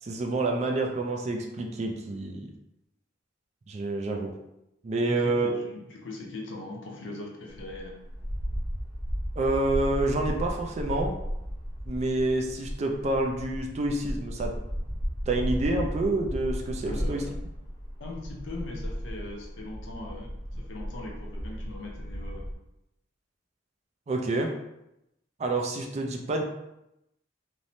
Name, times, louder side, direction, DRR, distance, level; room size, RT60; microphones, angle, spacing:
voice 1, 0.0-2.5 3.7-4.3 4.8-5.6 9.4-11.1 11.8-14.5 15.3-17.2 24.1-24.5 25.4-26.4, right 2 dB, 35° right, 2 dB, 0.3 m, -28 dB
voice 2, 5.0-8.0 16.8-17.3 18.0-22.4, left 2 dB, 75° left, -1 dB, 0.6 m, -40 dB
sound 1, 7.5-22.5, equal, 25° left, 0.5 m, -35 dB
3.1 x 2.0 x 2.6 m, 0.86 s
head